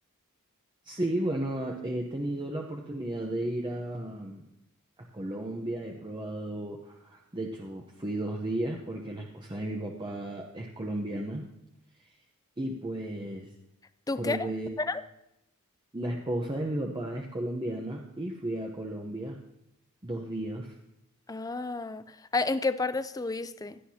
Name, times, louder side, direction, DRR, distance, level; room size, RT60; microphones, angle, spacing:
voice 1, 0.8-4.5 5.1-11.5 12.6-13.5 14.2-14.7 15.9-19.4 20.0-20.7, right 1 dB, 20° right, 0.9 m, -34 dB
voice 2, 14.1-14.5 14.8-15.0 21.3-23.8, left 3 dB, 15° left, 0.4 m, -31 dB
16.5 x 11.5 x 2.8 m
head